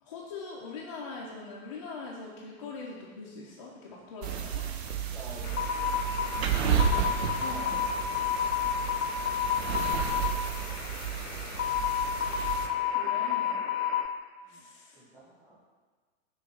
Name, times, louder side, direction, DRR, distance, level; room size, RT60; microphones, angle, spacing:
voice 1, 0.0-4.7 7.4-7.9 12.9-13.6 14.4-15.0, left 4 dB, 25° left, -6 dB, 0.3 m, -42 dB
sound 1, 4.2-12.7, right 8 dB, 50° right, 0.4 m, -32 dB
voice 2, 5.0-7.1 7.9-8.2 9.6-11.6 12.5-12.8 14.4-14.7 14.9-15.6, equal, 5° right, -7 dB, 1.0 m, -52 dB
sound 2, 5.4-14.1, left 8 dB, 70° left, 0.6 m, -31 dB
6.2 x 2.3 x 3.4 m, 1.5 s
figure-of-eight pair, 105°, 43 cm